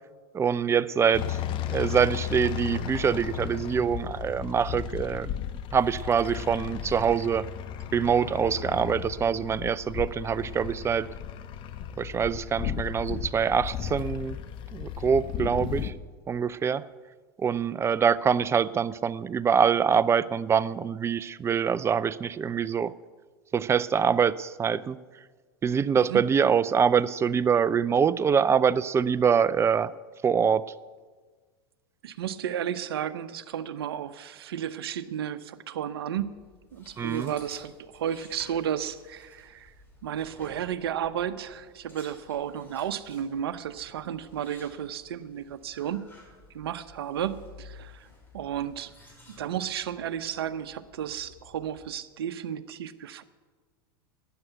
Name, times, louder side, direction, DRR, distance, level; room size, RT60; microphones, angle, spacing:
voice 1, 0.3-5.3 5.7-7.5 7.9-11.1 12.0-14.4 14.7-15.9 16.3-16.9 17.4-22.9 23.5-25.0 25.6-29.9 30.2-30.7 37.0-37.3, right 7 dB, 20° right, 18 dB, 0.4 m, -24 dB
sound 1, 1.1-15.9, left 10 dB, 40° left, 1.0 m, -35 dB
voice 2, 32.0-36.3 36.7-39.7 40.0-46.0 46.5-48.1 48.3-48.9 49.4-53.2, right 9 dB, 75° right, 13 dB, 0.8 m, -33 dB
sound 2, 36.4-51.9, left 2 dB, 15° left, 5.5 m, -54 dB
12.5 x 9.1 x 8.0 m, 1.4 s
hypercardioid pair, 95°, 13 cm